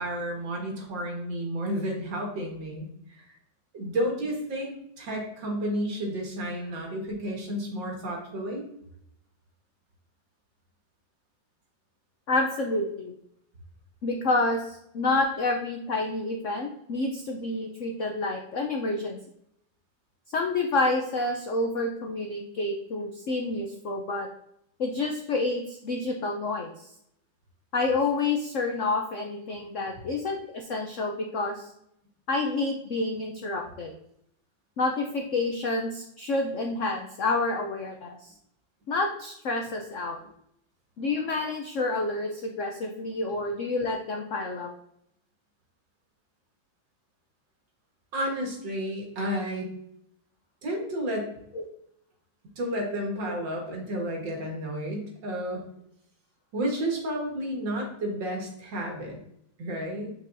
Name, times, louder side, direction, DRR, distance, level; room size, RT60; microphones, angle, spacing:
voice 1, 0.0-3.3 3.7-8.6 48.1-49.7 50.6-51.3 52.6-55.6 56.5-59.2 59.6-60.1, equal, 65° right, 0 dB, 2.3 m, -31 dB
voice 2, 12.3-13.1 14.0-19.2 20.3-24.3 24.8-26.9 27.7-31.7 32.3-33.9 34.8-38.3 38.9-40.2 41.0-44.7 51.5-51.6, left 2 dB, 75° left, 3 dB, 0.6 m, -29 dB
7.1 x 5.1 x 2.6 m, 0.74 s
omnidirectional pair, 2.2 m